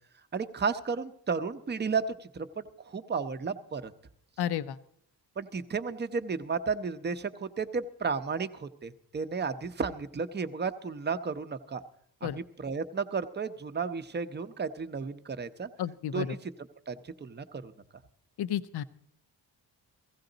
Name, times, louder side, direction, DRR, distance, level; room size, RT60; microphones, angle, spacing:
voice 1, 0.3-3.9 5.4-11.8 12.2-15.7 16.1-16.5 16.9-17.7, right 5 dB, 25° right, 9 dB, 0.6 m, -33 dB
voice 2, 4.4-4.8 12.2-12.4 15.8-16.4 18.4-18.8, left 10 dB, 70° left, 14 dB, 0.6 m, -32 dB
16.5 x 16.0 x 3.9 m, 0.68 s
wide cardioid pair, 165°, 40 cm